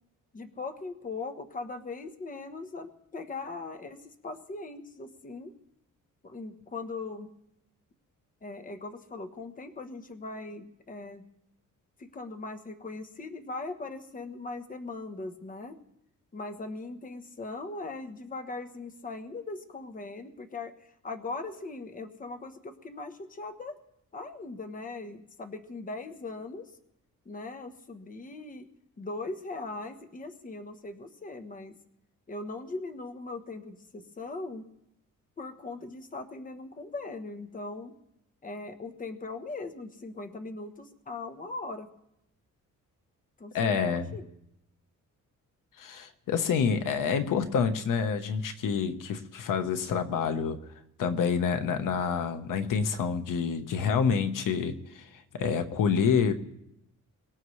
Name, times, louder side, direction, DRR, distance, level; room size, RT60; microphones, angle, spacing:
voice 1, 0.3-5.5 6.2-7.3 8.4-11.2 12.0-15.8 16.3-23.7 24.1-26.7 27.3-28.7 29.0-31.7 32.3-34.6 35.4-37.9 38.4-41.9 43.4-44.3, left 3 dB, 25° left, 6 dB, 1.1 m, -40 dB
voice 2, 43.5-44.1 45.8-50.6 51.0-56.3, left 6 dB, 80° left, 8 dB, 1.2 m, -28 dB
23.0 x 18.5 x 3.2 m, 0.81 s
wide cardioid pair, 155°, 32 cm